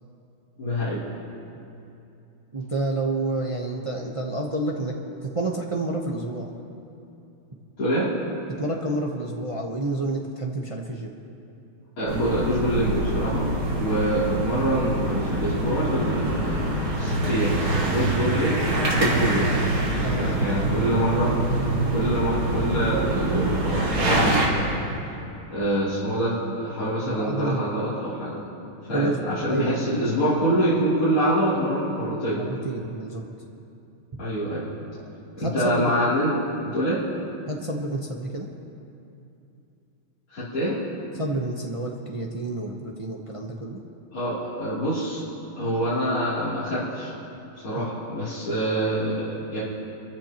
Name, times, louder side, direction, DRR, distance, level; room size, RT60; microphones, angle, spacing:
voice 1, 0.6-1.0 7.8-8.1 12.0-17.6 17.8-19.5 20.1-21.3 21.9-24.8 25.5-28.4 28.9-32.4 34.2-34.6 35.4-36.3 36.6-37.0 40.3-40.8 44.1-45.2 45.6-47.1 47.6-49.6, equal, 90° left, -13 dB, 4.1 m, -25 dB
voice 2, 2.5-5.0 5.2-6.5 8.6-11.1 20.0-20.9 27.0-27.9 28.9-29.9 32.3-33.2 34.1-34.2 35.4-35.9 36.2-36.3 37.5-38.5 41.1-43.8 47.8-47.9, right 2 dB, 45° right, 0 dB, 0.4 m, -29 dB
sound 1, 12.1-24.5, right 1 dB, 75° right, 3.2 m, -25 dB
26.5 x 14.5 x 3.0 m, 2.7 s
omnidirectional pair, 2.3 m